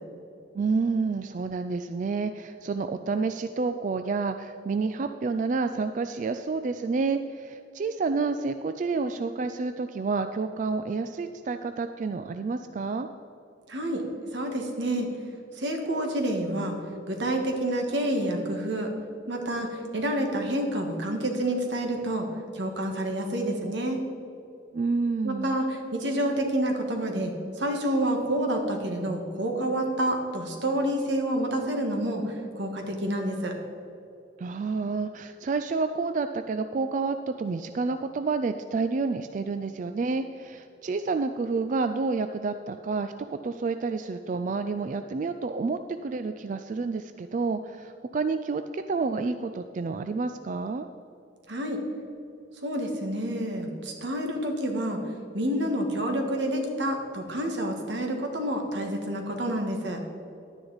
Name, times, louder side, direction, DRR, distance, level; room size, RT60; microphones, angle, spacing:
voice 1, 0.5-13.1 24.7-25.6 34.4-50.9, right 4 dB, 45° right, 9 dB, 0.3 m, -29 dB
voice 2, 13.7-14.0 14.3-15.1 15.5-16.8 17.1-18.9 19.3-22.3 22.5-24.0 25.2-33.5 51.5-51.8 52.6-55.0 55.3-60.0, right 1 dB, 80° right, 3 dB, 1.6 m, -28 dB
11.5 x 10.0 x 4.0 m, 2.8 s
head